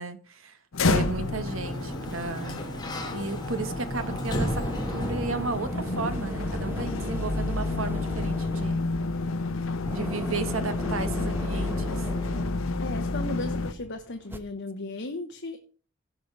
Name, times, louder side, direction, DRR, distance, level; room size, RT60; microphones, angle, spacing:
voice 1, 0.0-2.6 3.1-8.8 9.9-12.0, right 3 dB, 70° right, 1.4 m, -34 dB
sound 1, 0.7-13.7, left 3 dB, 75° left, 0.8 m, -30 dB
Sliding door, 1.1-6.0, equal, 20° left, 2.0 m, -33 dB
sound 2, 4.4-14.4, right 1 dB, 10° right, 1.0 m, -38 dB
voice 2, 12.8-15.6, left 2 dB, 60° left, 1.1 m, -35 dB
16.5 x 5.6 x 4.6 m
head